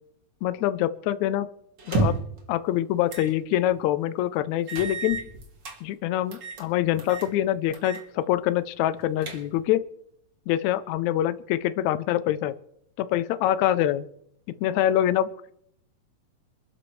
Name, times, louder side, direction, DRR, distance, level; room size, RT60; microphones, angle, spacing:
voice 1, 0.4-1.5 1.9-2.1 2.5-5.3 5.8-9.8 10.5-12.5 13.0-14.1 14.5-15.5, left 12 dB, 85° left, 13 dB, 1.6 m, -25 dB
sound 1, 1.8-2.4 3.1-3.3 3.7-3.8 4.7-5.8 6.3-6.7 7.0-7.3 7.7-8.1 8.4-8.5 9.0-9.7, right 2 dB, 40° right, 1.9 m, -30 dB
27.0 x 12.0 x 3.2 m, 0.73 s
omnidirectional pair, 4.0 m